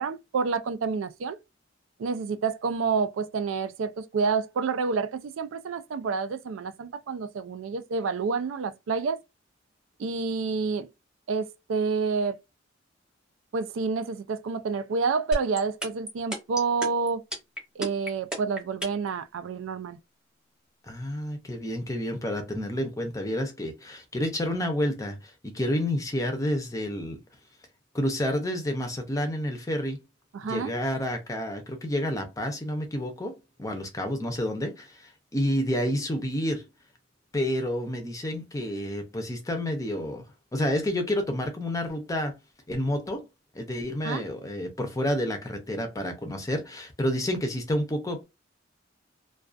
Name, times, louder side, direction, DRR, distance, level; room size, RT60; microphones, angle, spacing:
voice 1, 0.0-1.4 2.0-9.2 10.0-10.9 11.3-12.4 13.5-17.2 17.8-20.0 30.3-30.7 44.0-44.3, right 4 dB, 80° right, 0.4 m, -28 dB
sound 1, 15.3-19.1, right 1 dB, 5° right, 0.9 m, -31 dB
voice 2, 20.8-27.2 27.9-30.0 30.4-36.7 37.3-40.3 40.5-42.4 42.7-43.2 43.5-48.2, left 1 dB, 15° left, 0.5 m, -29 dB
2.3 x 2.2 x 2.4 m
head